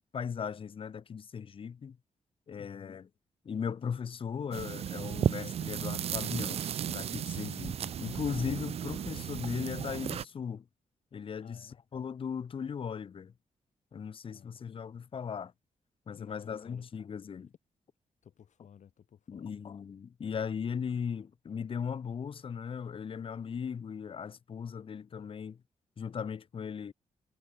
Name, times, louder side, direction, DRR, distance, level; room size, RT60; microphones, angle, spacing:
voice 1, 0.1-2.0 2.5-3.0 3.4-6.6 6.9-10.6 11.1-13.3 13.9-15.5 16.1-17.5 19.3-25.6 26.0-26.9, left 7 dB, 45° left, 1.0 m, -38 dB
voice 2, 2.6-3.0 11.4-11.8 14.2-14.6 16.1-16.9 18.2-19.6, left 8 dB, 65° left, 4.4 m, -54 dB
sound 1, 4.5-10.3, right 9 dB, 50° right, 0.4 m, -34 dB
wide cardioid pair, 140°, 13 cm